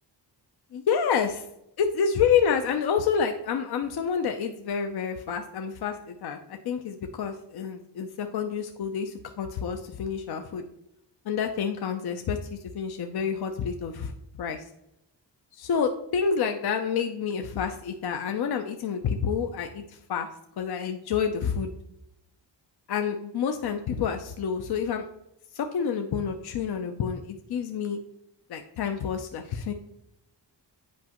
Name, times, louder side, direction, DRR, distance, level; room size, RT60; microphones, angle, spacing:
voice 1, 0.7-1.4 1.8-10.6 11.3-14.1 14.4-14.6 15.6-19.8 20.1-20.3 20.6-21.7 22.9-25.1 25.5-28.0 28.5-29.7, left 7 dB, 60° left, 6 dB, 0.6 m, -28 dB
8.4 x 5.0 x 2.9 m, 0.81 s
wide cardioid pair, 110°, 43 cm